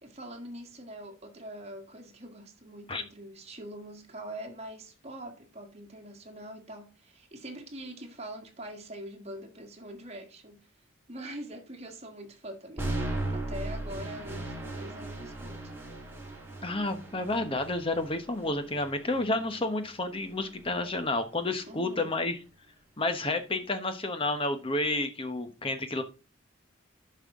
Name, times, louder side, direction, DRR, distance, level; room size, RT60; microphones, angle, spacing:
voice 1, 0.0-10.7 11.1-12.9 13.3-15.7 21.7-22.1, right 1 dB, 30° right, 1.7 m, -43 dB
sound 1, 12.8-20.8, right 1 dB, 10° right, 2.1 m, -38 dB
voice 2, 16.6-22.4 23.0-26.0, left 2 dB, 25° left, 1.0 m, -30 dB
10.5 x 5.7 x 3.7 m
head